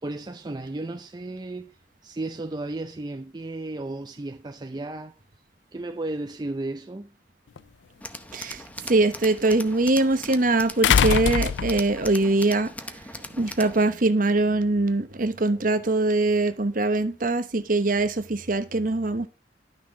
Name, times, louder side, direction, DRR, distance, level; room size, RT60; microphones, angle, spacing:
voice 1, 0.0-1.8 2.0-5.1 5.7-7.1, right 2 dB, 25° right, 0.5 m, -34 dB
sound 1, 7.6-7.7 10.8-12.1 13.5-13.6, left 7 dB, 85° left, 0.4 m, -22 dB
Tools, 8.0-13.9, left 2 dB, 10° left, 0.8 m, -39 dB
voice 2, 8.3-12.7 13.3-19.3, right 2 dB, 50° right, 1.0 m, -23 dB
11.5 x 6.2 x 4.7 m
head